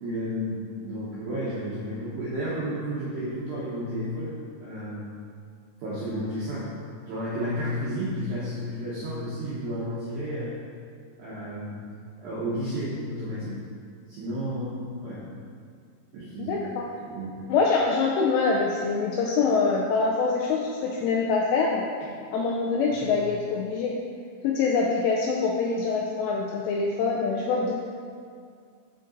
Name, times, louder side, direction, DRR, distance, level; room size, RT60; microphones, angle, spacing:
voice 1, 0.0-5.0 5.8-6.7 7.1-10.6 11.2-11.8 12.2-13.6 14.1-15.2 16.1-16.6 17.1-17.3 23.0-23.1, equal, 80° right, -8 dB, 2.1 m, -32 dB
voice 2, 16.4-16.9 17.5-21.9 22.3-24.0 24.4-27.7, left 4 dB, 85° left, -2 dB, 2.5 m, -25 dB
6.9 x 5.2 x 3.8 m, 2.2 s
omnidirectional pair, 5.4 m